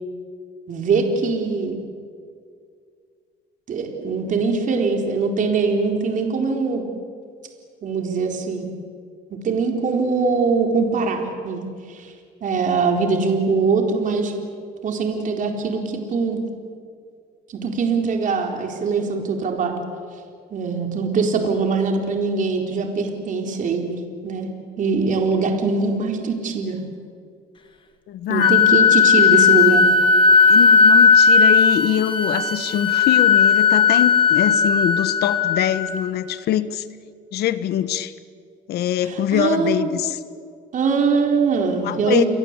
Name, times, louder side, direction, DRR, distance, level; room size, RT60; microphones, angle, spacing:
voice 1, 0.7-1.8 3.7-6.8 7.8-8.7 9.4-11.6 11.9-12.1 12.4-14.3 14.8-16.4 17.5-19.8 20.5-24.5 24.8-26.8 28.3-29.9 39.0-40.0 40.7-42.3, right 4 dB, 50° right, 3 dB, 4.2 m, -22 dB
voice 2, 28.1-28.6 30.5-36.8 37.3-38.1 38.7-40.2 41.8-42.2, left 11 dB, 70° left, 13 dB, 1.5 m, -23 dB
Wind instrument woodwind instrument, 28.4-36.1, left 5 dB, 30° left, 2.5 m, -15 dB
30.0 x 22.5 x 8.3 m, 2.2 s
cardioid pair, 110°, 17 cm